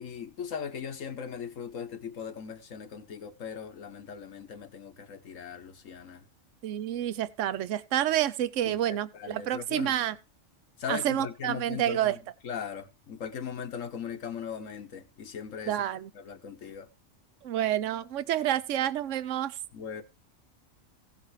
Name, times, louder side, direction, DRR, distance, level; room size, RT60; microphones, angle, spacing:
voice 1, 0.0-6.3 8.6-8.8 9.1-9.9 10.8-12.2 12.4-15.8 16.1-16.9 19.7-20.0, left 7 dB, 85° left, 1.5 m, -39 dB
voice 2, 6.6-10.2 10.9-12.2 15.7-16.1 17.4-19.6, right 12 dB, 75° right, 1.0 m, -29 dB
16.5 x 5.7 x 4.9 m
omnidirectional pair, 1.3 m